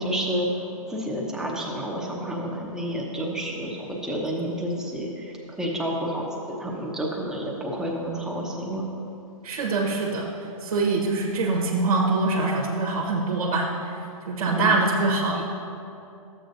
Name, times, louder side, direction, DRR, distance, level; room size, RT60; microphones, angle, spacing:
voice 1, 0.0-8.9 14.5-14.8, equal, 5° right, -2 dB, 0.9 m, -30 dB
voice 2, 9.4-10.3 10.6-13.7 14.3-15.4, right 3 dB, 75° right, -3 dB, 1.3 m, -24 dB
12.5 x 8.2 x 2.7 m, 2.7 s
hypercardioid pair, 140°, 18 cm